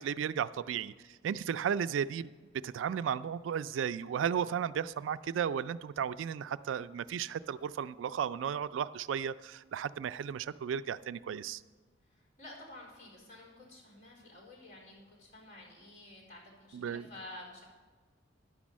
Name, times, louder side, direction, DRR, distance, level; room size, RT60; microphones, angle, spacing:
voice 1, 0.0-2.3 2.6-11.6 16.7-17.1, right 8 dB, 90° right, 15 dB, 0.3 m, -34 dB
voice 2, 12.1-17.6, left 1 dB, 40° left, -4 dB, 4.2 m, -51 dB
10.5 x 6.1 x 7.3 m, 1.4 s
head